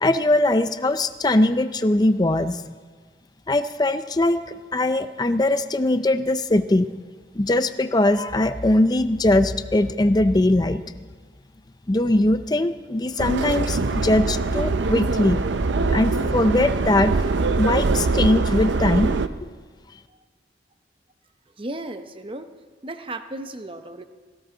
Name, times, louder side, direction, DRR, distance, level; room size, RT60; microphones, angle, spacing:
voice 1, 0.0-2.6 3.5-4.4 4.7-6.9 7.3-10.8 11.9-15.4 15.9-17.1 17.6-19.2, left 1 dB, 20° left, 11 dB, 0.5 m, -21 dB
Subway metro underground, 13.2-19.3, right 3 dB, 85° right, 0.6 m, -23 dB
voice 2, 21.6-22.5 22.8-24.0, right 2 dB, 30° right, 8 dB, 0.8 m, -35 dB
17.5 x 16.0 x 3.9 m, 1.5 s
head